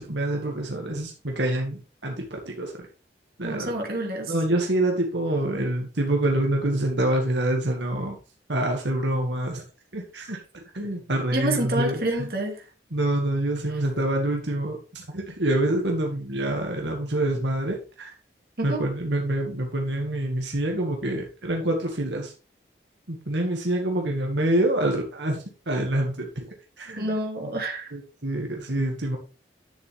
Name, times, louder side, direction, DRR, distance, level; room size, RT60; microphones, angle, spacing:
voice 1, 0.0-2.7 3.4-3.7 4.3-8.2 8.5-9.6 9.9-12.3 12.9-18.1 18.6-22.3 23.1-26.5 26.8-27.1 27.9-29.2, right 1 dB, 80° right, 2.0 m, -26 dB
voice 2, 3.4-4.3 11.3-12.6 18.6-18.9 27.0-28.0, right 1 dB, 55° right, 2.7 m, -28 dB
10.5 x 7.1 x 3.5 m
head